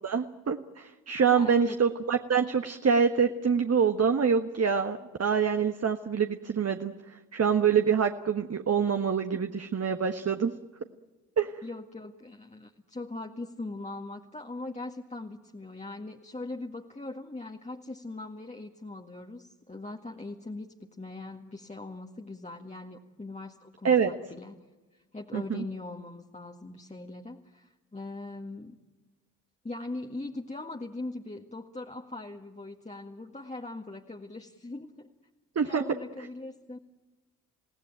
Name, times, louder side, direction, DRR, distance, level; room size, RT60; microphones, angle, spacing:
voice 1, 0.0-6.9 7.3-10.5 11.4-11.5 23.8-24.1 25.3-25.6 35.5-35.8, right 6 dB, 35° right, 6 dB, 1.4 m, -25 dB
voice 2, 1.3-1.8 9.3-9.4 11.6-24.6 24.9-28.8 29.6-35.1 35.6-36.8, left 2 dB, 15° left, 1 dB, 1.9 m, -40 dB
28.5 x 18.0 x 9.0 m, 1.2 s
hypercardioid pair, 45°, 44 cm